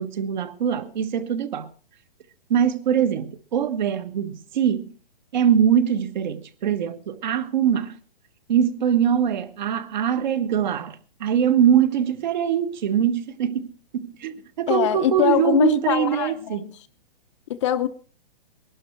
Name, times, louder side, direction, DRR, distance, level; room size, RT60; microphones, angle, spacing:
voice 1, 0.0-1.7 2.5-4.9 5.3-8.0 8.5-16.7, right 9 dB, 50° right, 1.5 m, -22 dB
voice 2, 14.7-16.7 17.5-17.9, left 12 dB, 30° left, 0.7 m, -23 dB
20.0 x 12.0 x 4.6 m
hypercardioid pair, 160°, 29 cm